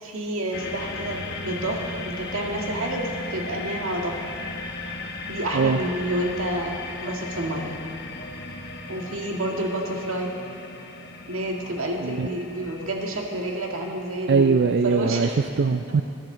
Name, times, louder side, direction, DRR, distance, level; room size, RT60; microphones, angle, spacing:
voice 1, 0.0-4.2 5.3-7.7 8.9-10.3 11.3-14.6 14.8-15.4, right 1 dB, 90° right, 0 dB, 2.0 m, -29 dB
sound 1, 0.5-14.7, left 2 dB, 55° left, 1.1 m, -36 dB
voice 2, 14.3-16.0, right 5 dB, 55° right, 7 dB, 0.4 m, -21 dB
22.0 x 11.5 x 3.9 m, 2.6 s
head